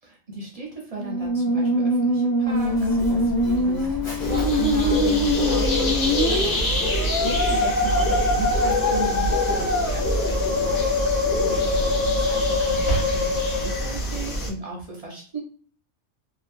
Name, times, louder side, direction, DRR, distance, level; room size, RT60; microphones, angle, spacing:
voice 1, 0.0-11.1 11.4-15.4, right 2 dB, 40° right, -2 dB, 0.6 m, -36 dB
Musical instrument, 1.0-14.0, left 1 dB, 25° left, 0.4 m, -24 dB
Mechanisms, 2.4-13.6, right 2 dB, 55° left, 1.2 m, -34 dB
sound 1, 4.2-14.5, left 1 dB, 75° left, 1.1 m, -26 dB
2.8 x 2.2 x 2.5 m, 0.44 s
omnidirectional pair, 1.3 m